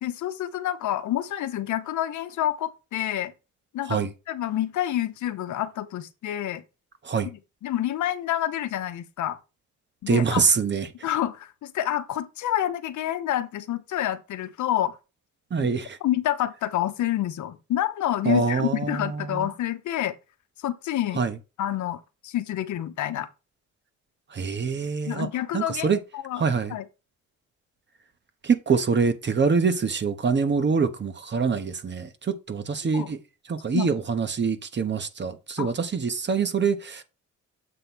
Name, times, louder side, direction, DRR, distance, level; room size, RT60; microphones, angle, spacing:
voice 1, 0.0-3.3 3.7-4.0 4.3-6.6 7.2-9.4 10.0-10.4 11.0-14.9 15.6-15.7 16.0-20.1 20.6-21.3 21.6-23.3 25.1-26.4 26.7-26.8 32.9-33.1 33.7-33.9 35.6-35.7, left 12 dB, 75° left, 0.9 m, -28 dB
voice 2, 10.1-10.9 15.5-16.0 18.2-19.5 21.2-21.3 24.3-25.3 25.5-26.0 26.4-26.8 28.4-33.2 33.5-37.0, right 5 dB, 35° right, 1.2 m, -25 dB
7.7 x 3.2 x 6.0 m
cardioid pair, 90°, 30 cm